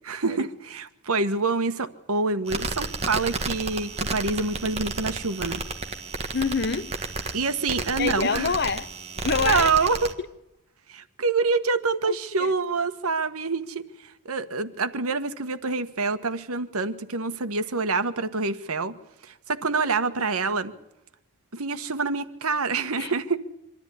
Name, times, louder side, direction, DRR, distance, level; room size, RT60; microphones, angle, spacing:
voice 1, 0.1-5.6 7.3-8.5 9.4-10.1 10.9-19.0 19.2-20.7 21.5-23.4, right 4 dB, 90° right, 1.4 m, -26 dB
sound 1, 2.5-10.1, right 3 dB, 30° right, 1.8 m, -32 dB
voice 2, 6.3-7.0 8.0-8.9 9.2-9.7 12.0-12.5 20.2-20.3 23.0-23.1, left 5 dB, 50° left, 0.8 m, -27 dB
25.0 x 13.5 x 9.9 m
head